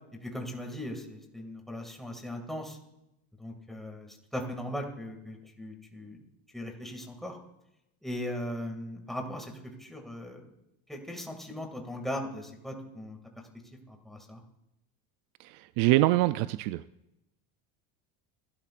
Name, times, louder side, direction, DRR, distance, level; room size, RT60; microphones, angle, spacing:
voice 1, 0.2-2.8 3.4-6.2 6.5-7.4 8.0-10.5 10.9-13.2 13.9-14.4, left 1 dB, ahead, 1 dB, 2.3 m, -38 dB
voice 2, 15.4-16.8, right 17 dB, 70° right, 13 dB, 0.5 m, -25 dB
25.0 x 13.0 x 2.5 m, 0.87 s
cardioid pair, 130°, 41 cm